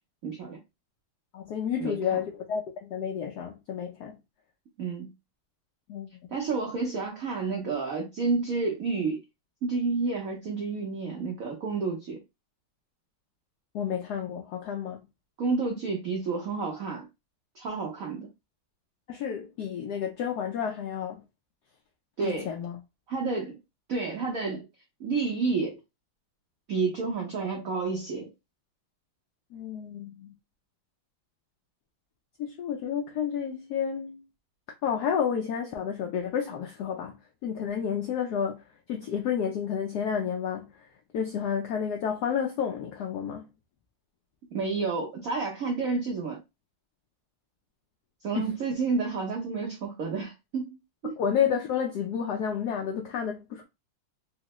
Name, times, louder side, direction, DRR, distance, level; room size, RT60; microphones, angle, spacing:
voice 1, 0.2-0.6 1.8-2.0 4.8-5.1 6.3-9.2 9.6-12.2 15.4-17.0 17.6-18.3 22.2-22.5 23.1-23.6 23.9-24.7 25.0-25.8 26.7-28.3 44.5-46.4 48.2-51.1, right 4 dB, 75° right, 0.8 m, -30 dB
voice 2, 1.3-4.2 5.9-6.1 13.7-15.0 19.1-21.2 22.2-22.8 29.5-30.3 32.4-34.2 34.8-40.7 41.1-43.5 48.3-48.5 51.2-53.6, left 8 dB, 85° left, 0.8 m, -30 dB
3.7 x 2.0 x 2.9 m
omnidirectional pair, 2.3 m